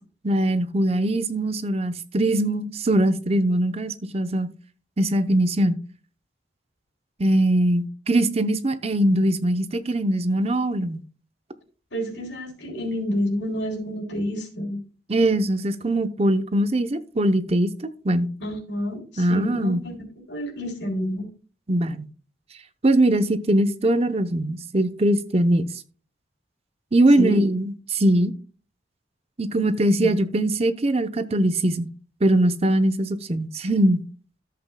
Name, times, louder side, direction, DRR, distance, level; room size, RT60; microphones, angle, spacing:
voice 1, 0.2-4.5 5.0-5.8 7.2-11.0 15.1-18.3 19.2-19.8 21.7-22.1 22.8-25.6 26.9-28.3 29.4-31.9 32.2-34.0, right 1 dB, 35° right, 0.7 m, -21 dB
voice 2, 11.9-14.8 18.4-21.3 27.2-27.4 30.0-30.1, equal, 75° left, 3.5 m, -29 dB
14.0 x 7.8 x 2.2 m
head